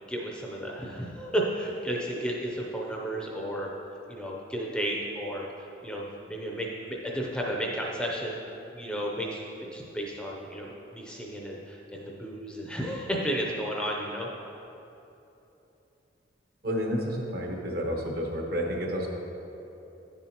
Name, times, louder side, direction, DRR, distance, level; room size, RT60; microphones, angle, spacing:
voice 1, 0.1-3.7 4.1-5.5 5.8-8.4 8.7-14.3, equal, 5° left, -2 dB, 0.6 m, -33 dB
voice 2, 16.6-19.1, equal, 50° right, 0 dB, 0.9 m, -30 dB
10.0 x 7.0 x 2.9 m, 3.0 s
head